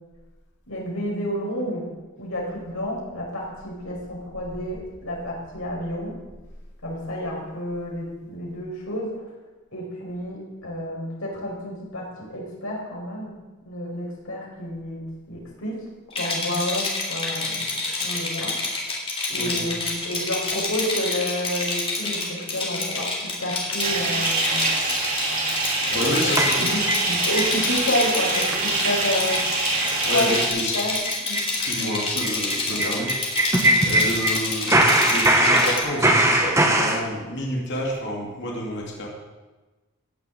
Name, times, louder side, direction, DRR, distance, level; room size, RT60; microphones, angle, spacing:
voice 1, 0.7-1.9 2.2-6.2 6.8-9.1 9.7-13.4 13.6-15.0 15.3-15.8 16.2-17.7 18.0-18.6 19.3-24.6 25.8-26.8 27.1-29.4 30.0-30.4 30.7-30.9 31.3-31.5 32.7-33.0, left 1 dB, 80° left, -3 dB, 5.7 m, -30 dB
Rattle, 16.1-35.8, left 3 dB, 25° left, 3.1 m, -28 dB
voice 2, 19.4-19.7 25.9-27.2 30.0-30.9 31.5-39.1, left 1 dB, 55° left, -3 dB, 2.8 m, -29 dB
Bathtub (filling or washing) / Fill (with liquid), 23.8-30.5, right 3 dB, 40° right, 4.5 m, -25 dB
sound 1, 26.4-27.5 27.9-28.0 28.3-28.6 28.8-28.9 29.3-29.5 29.8-30.0 30.3-30.4 30.7-34.4 34.7-37.0, right 1 dB, 15° right, 1.5 m, -21 dB
15.5 x 7.1 x 8.7 m, 1.2 s
head